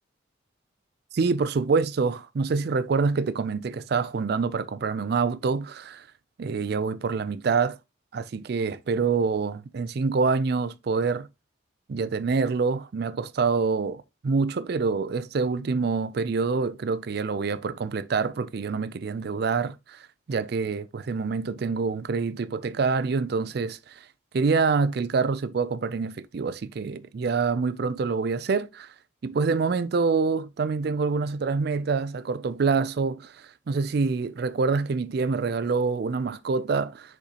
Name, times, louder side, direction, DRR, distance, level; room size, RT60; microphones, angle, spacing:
voice 1, 1.1-6.1 6.4-7.8 8.1-11.3 11.9-24.1 24.3-28.9 29.2-37.2, right 4 dB, 55° right, 0.4 m, -26 dB
6.6 x 5.1 x 2.9 m
head